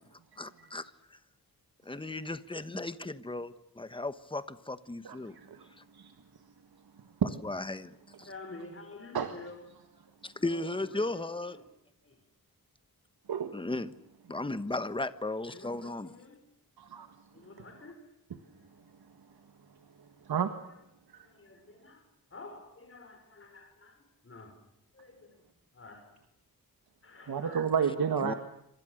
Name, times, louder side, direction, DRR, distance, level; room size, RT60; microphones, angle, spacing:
voice 1, 0.4-0.9 1.8-5.3 7.4-8.3 10.2-11.6 13.5-13.9 14.3-16.1 28.2-28.3, left 2 dB, 15° left, 1.2 m, -36 dB
voice 2, 5.0-5.6 5.9-6.1 7.2-7.3 9.1-9.3 13.3-13.5 16.8-17.1 20.2-20.5 27.3-28.3, right 7 dB, 90° right, 1.8 m, -30 dB
voice 3, 8.2-9.7 10.4-11.7 12.0-12.2 15.5-16.4 17.3-18.1 18.6-18.9 20.7-20.8 21.1-24.6 24.9-25.5 25.7-26.2 27.0-27.8, left 3 dB, 35° left, 5.7 m, -50 dB
28.5 x 25.5 x 6.6 m
wide cardioid pair, 155°, 36 cm